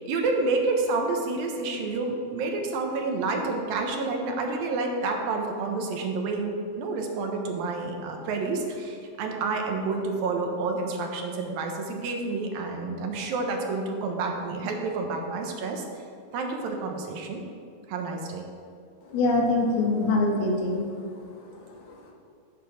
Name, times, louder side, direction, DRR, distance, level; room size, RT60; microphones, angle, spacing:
voice 1, 0.0-15.8 16.3-17.4 17.9-18.4, right 3 dB, 75° right, 2 dB, 2.8 m, -29 dB
voice 2, 19.1-20.9 21.9-22.0, left 2 dB, 80° left, 0 dB, 3.5 m, -24 dB
13.5 x 6.9 x 6.4 m, 2.4 s
omnidirectional pair, 4.4 m